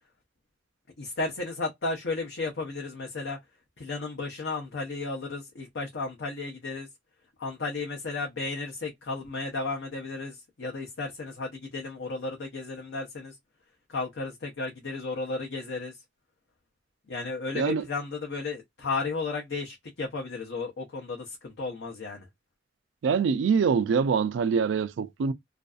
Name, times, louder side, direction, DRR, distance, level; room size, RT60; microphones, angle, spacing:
voice 1, 1.0-3.4 3.8-6.9 7.4-13.4 13.9-16.0 17.1-22.3, left 3 dB, 70° left, 0.6 m, -34 dB
voice 2, 23.0-25.3, right 6 dB, 80° right, 0.3 m, -24 dB
2.5 x 2.3 x 2.3 m
head